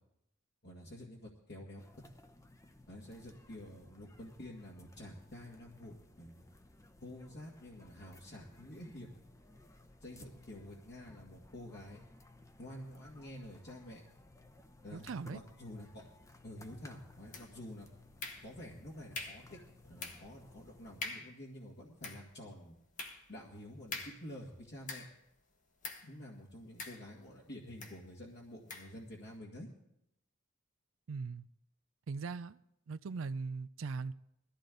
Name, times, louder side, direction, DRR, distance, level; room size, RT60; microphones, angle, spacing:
voice 1, 0.6-1.8 2.9-6.5 7.0-9.1 10.0-12.0 12.6-14.0 14.8-16.1 16.4-17.9 18.4-22.8 23.3-25.1 26.0-29.7, left 1 dB, 60° left, -3 dB, 2.0 m, -49 dB
sound 1, 1.8-21.0, left 2 dB, 15° left, 0.8 m, -59 dB
voice 2, 14.9-15.4 31.1-31.5 32.1-32.6 32.9-34.1, right 4 dB, 80° right, 14 dB, 0.5 m, -39 dB
sound 2, 17.3-17.7 18.2-18.8 19.1-19.5 20.0-20.4 20.7-20.8 21.0-21.4 21.8-25.3 25.8-26.2 26.8-27.4 27.8-28.0 28.7-29.0, left 3 dB, 40° left, 1.2 m, -45 dB
20.5 x 14.0 x 3.9 m, 0.80 s
head